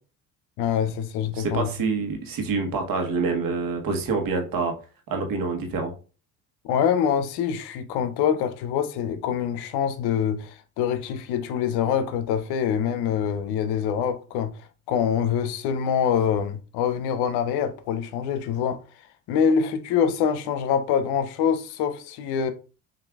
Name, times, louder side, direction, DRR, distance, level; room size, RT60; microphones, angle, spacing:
voice 1, 0.6-1.7 6.6-14.5 14.9-18.8 19.3-22.5, left 8 dB, 75° left, 0.6 m, -25 dB
voice 2, 1.3-4.7 5.1-5.9, right 4 dB, 60° right, 1.1 m, -26 dB
5.9 x 2.6 x 2.3 m
supercardioid pair, 70°, 39 cm